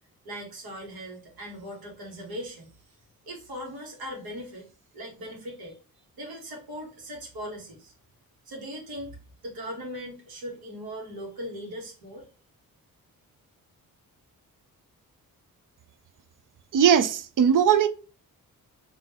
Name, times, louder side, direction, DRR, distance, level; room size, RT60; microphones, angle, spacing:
voice 1, 0.2-2.7 3.3-4.7 4.9-5.8 6.2-7.9 8.4-9.2 9.4-12.3, equal, 90° right, 1.6 m, -39 dB
voice 2, 16.7-17.9, right 8 dB, 60° right, 0.5 m, -19 dB
3.7 x 2.9 x 2.9 m
cardioid pair, 115°, 36 cm